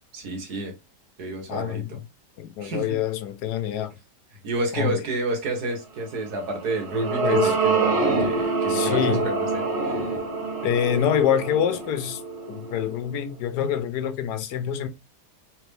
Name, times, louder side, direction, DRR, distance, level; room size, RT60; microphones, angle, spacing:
voice 1, 0.1-0.7 1.2-2.0 2.6-3.0 4.4-10.0, right 2 dB, 65° right, 1.8 m, -30 dB
voice 2, 1.5-2.0 2.4-3.9 4.8-5.0 7.2-7.6 8.7-9.3 10.6-12.2 12.5-14.9, left 9 dB, 75° left, 1.2 m, -26 dB
sound 1, 6.4-12.9, right 4 dB, 45° right, 1.1 m, -26 dB
sound 2, 8.2-13.0, right 1 dB, 35° left, 1.3 m, -33 dB
3.5 x 3.3 x 3.2 m
omnidirectional pair, 1.8 m